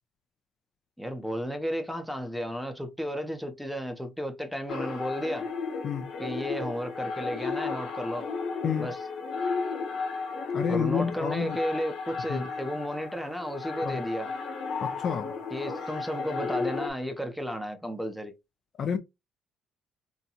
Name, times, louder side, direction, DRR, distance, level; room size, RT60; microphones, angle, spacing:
voice 1, 1.0-5.5 6.2-8.3 8.8-9.0 10.7-14.3 15.5-18.3, equal, ahead, 0.6 m, -33 dB
sound 1, 4.7-16.9, left 4 dB, 65° left, 1.1 m, -34 dB
voice 2, 10.5-11.6 12.3-12.5 13.8-14.0 14.8-15.3 18.8-19.0, left 7 dB, 45° left, 0.4 m, -29 dB
3.9 x 2.2 x 2.8 m
cardioid pair, 145°, 0 cm